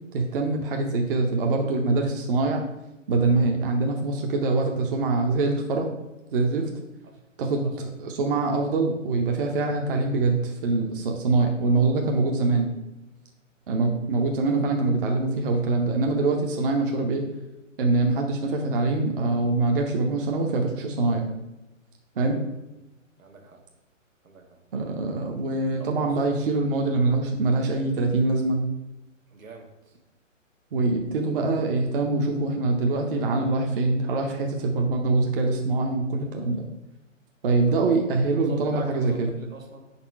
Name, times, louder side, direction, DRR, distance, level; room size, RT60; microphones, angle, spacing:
voice 1, 0.1-2.6 3.1-5.9 6.3-6.7 7.4-12.7 13.7-17.3 17.8-21.3 22.2-22.4 24.7-28.6 30.7-36.6 37.4-39.3, right 3 dB, 45° right, 2 dB, 0.7 m, -24 dB
voice 2, 23.2-23.6 24.2-24.4 25.8-26.2 29.3-29.7 37.8-38.0 38.4-39.8, right 4 dB, 85° right, 3 dB, 1.4 m, -42 dB
5.2 x 4.2 x 4.5 m, 0.97 s
hypercardioid pair, 145°, 39 cm